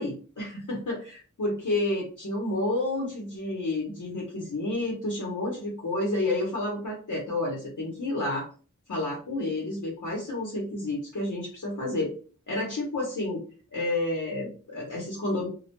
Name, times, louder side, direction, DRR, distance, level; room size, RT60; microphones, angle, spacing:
voice 1, 0.0-8.5 8.9-12.1 12.5-13.4 13.7-15.5, left 2 dB, 70° left, -3 dB, 0.8 m, -30 dB
2.1 x 2.1 x 2.8 m, 0.38 s
wide cardioid pair, 60°, 31 cm